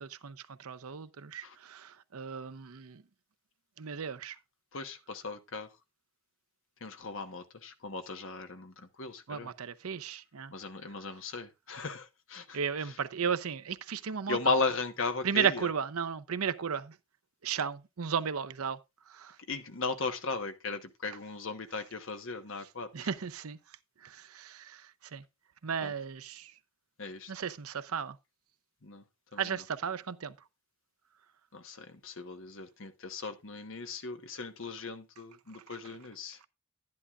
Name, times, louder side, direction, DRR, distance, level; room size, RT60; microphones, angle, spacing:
voice 1, 0.0-3.0 3.8-4.4 9.3-10.5 12.5-14.4 15.2-16.9 17.4-18.8 19.1-19.4 22.9-23.6 24.0-24.9 25.1-25.2 25.6-26.5 27.3-28.2 29.4-30.3, right 7 dB, 90° right, 0.6 m, -34 dB
voice 2, 4.7-5.7 6.8-9.5 10.5-12.6 14.3-15.7 19.5-22.9 25.8-25.9 27.0-27.3 28.8-29.0 29.3-29.6 31.5-36.4, left 3 dB, 65° left, 1.1 m, -36 dB
11.0 x 10.5 x 2.4 m
head